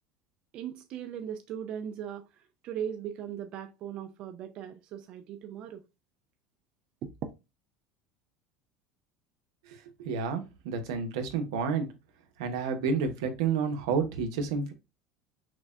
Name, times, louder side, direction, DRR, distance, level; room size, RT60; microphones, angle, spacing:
voice 1, 0.5-2.2 2.6-5.8 7.0-7.3, right 9 dB, 45° right, 0.4 m, -38 dB
voice 2, 10.0-11.9 12.4-14.7, right 5 dB, 85° right, 0.8 m, -30 dB
6.0 x 2.2 x 2.3 m
supercardioid pair, 135°, 2 cm